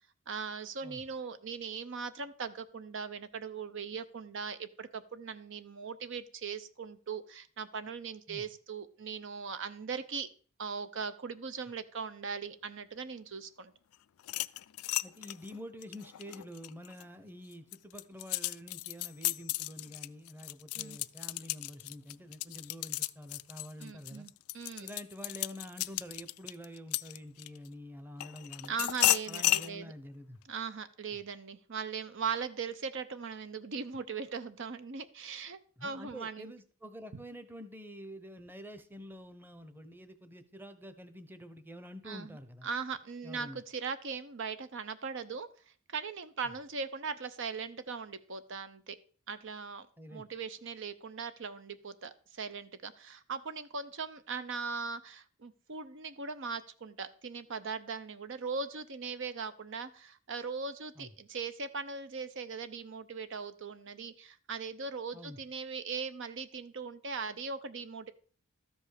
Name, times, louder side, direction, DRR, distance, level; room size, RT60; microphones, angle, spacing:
voice 1, 0.3-10.3 10.6-13.7 20.8-21.0 23.8-24.9 28.7-29.9 30.5-36.5 42.1-42.4 42.6-49.0 49.3-49.9 50.1-68.1, right 5 dB, 60° right, 12 dB, 0.7 m, -39 dB
sound 1, 14.2-17.0 17.5-27.7 28.2-29.7, left 16 dB, 85° left, 0.4 m, -34 dB
voice 2, 15.0-24.3 24.8-28.7 29.3-30.4 35.8-42.7 43.2-43.6 50.0-50.2 61.0-61.1 65.1-65.4, equal, 10° right, 10 dB, 0.9 m, -47 dB
13.0 x 5.4 x 6.5 m, 0.42 s
head